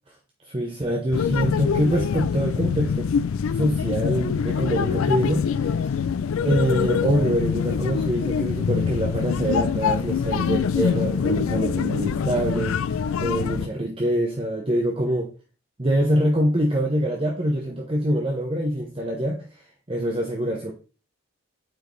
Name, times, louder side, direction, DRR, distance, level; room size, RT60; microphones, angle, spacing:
voice 1, 0.4-3.1 3.5-6.0 6.4-15.3 15.8-20.7, right 1 dB, 25° right, 0 dB, 0.8 m, -25 dB
sound 1, 1.1-13.7, left 6 dB, 80° left, 0.4 m, -24 dB
8.2 x 4.6 x 3.1 m, 0.35 s
head